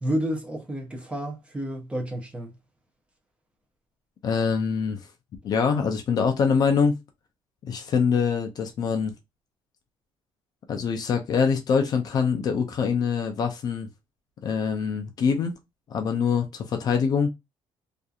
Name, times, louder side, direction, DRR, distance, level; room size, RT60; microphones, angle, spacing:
voice 1, 0.0-2.5, right 1 dB, 10° right, 0.6 m, -30 dB
voice 2, 4.2-5.1 5.4-6.9 7.6-9.1 10.7-13.9 14.4-15.5 15.9-17.3, left 6 dB, 40° left, 0.4 m, -24 dB
2.7 x 2.4 x 2.3 m
cardioid pair, 170°, 11 cm